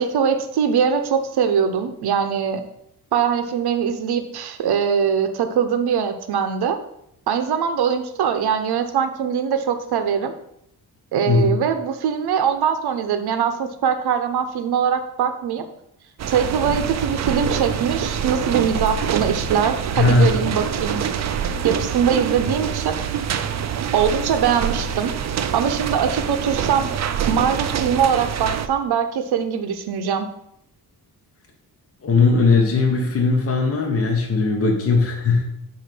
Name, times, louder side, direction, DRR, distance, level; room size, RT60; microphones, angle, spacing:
voice 1, 0.0-2.6 3.1-6.8 7.3-10.3 11.1-15.7 16.3-21.0 21.6-23.0 23.9-25.1 25.5-26.9 27.3-30.3, right 7 dB, 80° right, 8 dB, 0.8 m, -22 dB
sound 1, 16.2-28.7, right 8 dB, 45° right, 0.5 m, -25 dB
voice 2, 19.9-20.5 32.0-35.4, left 4 dB, 35° left, 0 dB, 1.1 m, -18 dB
8.1 x 2.7 x 5.9 m, 0.78 s
wide cardioid pair, 140°, 38 cm